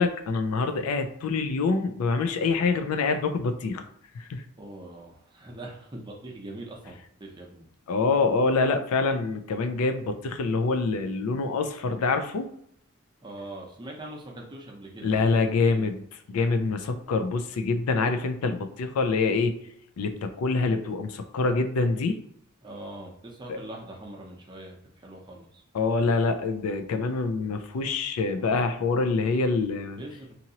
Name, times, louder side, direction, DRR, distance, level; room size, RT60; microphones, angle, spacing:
voice 1, 0.0-3.8 4.2-4.4 7.9-12.5 15.0-16.0 16.3-19.5 20.0-22.2 23.5-23.6 25.7-30.0, left 4 dB, 75° left, 7 dB, 0.4 m, -25 dB
voice 2, 4.6-6.9 7.2-7.7 13.2-15.3 15.7-15.9 22.6-25.6 30.0-30.4, right 1 dB, 20° right, -1 dB, 0.6 m, -42 dB
2.9 x 2.6 x 2.8 m, 0.69 s
head